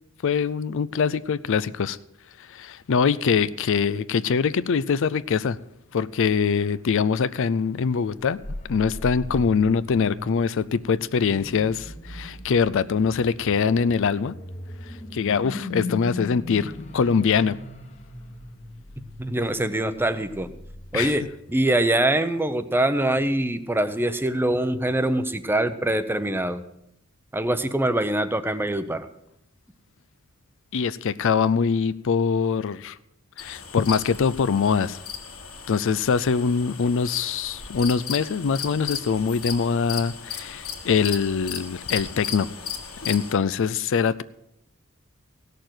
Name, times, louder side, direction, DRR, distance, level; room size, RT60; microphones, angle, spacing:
voice 1, 0.2-2.0 2.4-5.6 5.9-8.4 8.7-14.3 15.1-17.6 20.9-21.2 30.7-33.0 33.4-35.0 35.7-42.5 43.0-44.2, left 6 dB, 65° left, 0.4 m, -23 dB
sound 1, 8.4-21.7, left 2 dB, 30° left, 1.3 m, -39 dB
voice 2, 19.2-20.5 20.9-21.2 21.5-26.6 27.3-29.1, right 1 dB, 10° right, 0.7 m, -24 dB
sound 2, 33.4-43.3, left 7 dB, 80° left, 1.8 m, -36 dB
16.5 x 6.7 x 7.8 m
head